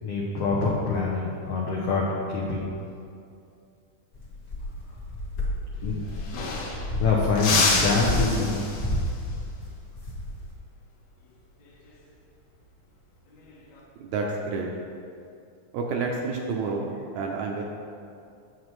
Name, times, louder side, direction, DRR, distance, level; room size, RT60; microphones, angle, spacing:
voice 1, 0.0-2.7 5.8-6.0 7.0-8.6, left 3 dB, 85° left, -4 dB, 1.3 m, -25 dB
sound 1, 4.1-10.5, left 1 dB, 40° left, 1.3 m, -32 dB
sound 2, 5.7-5.8 6.0-7.0 7.4-9.1 11.6-11.9 13.3-13.8, left 3 dB, 65° left, 1.9 m, -28 dB
voice 2, 14.0-14.7 15.7-17.6, right 4 dB, 75° right, 0 dB, 1.8 m, -29 dB
9.1 x 7.4 x 3.2 m, 2.4 s
omnidirectional pair, 3.8 m